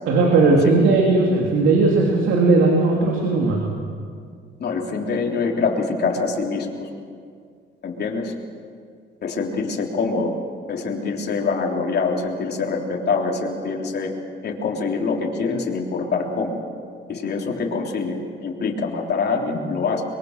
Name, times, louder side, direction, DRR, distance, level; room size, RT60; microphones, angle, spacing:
voice 1, 0.1-3.7, right 3 dB, 85° right, -1 dB, 3.0 m, -17 dB
voice 2, 4.6-6.9 7.8-8.3 9.2-10.3 10.7-14.1 14.4-16.6 17.1-20.0, left 4 dB, 55° left, 0 dB, 3.5 m, -25 dB
23.0 x 22.5 x 6.7 m, 2.2 s
cardioid pair, 90°, 20 cm